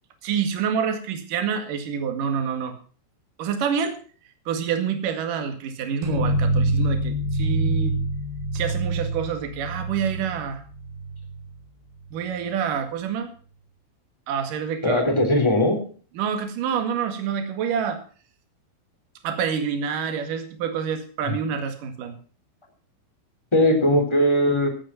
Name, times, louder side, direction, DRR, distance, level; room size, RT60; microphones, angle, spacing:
voice 1, 0.2-2.7 3.4-4.0 4.5-8.0 8.5-10.6 12.1-13.3 14.3-15.0 16.2-18.0 19.2-22.2, right 7 dB, 55° right, 7 dB, 2.9 m, -27 dB
sound 1, 6.0-11.6, right 2 dB, 70° right, 8.1 m, -26 dB
voice 2, 14.8-15.8 21.3-21.4 23.5-24.7, left 1 dB, 10° left, 3 dB, 2.2 m, -19 dB
16.0 x 9.0 x 5.7 m, 0.41 s
omnidirectional pair, 5.8 m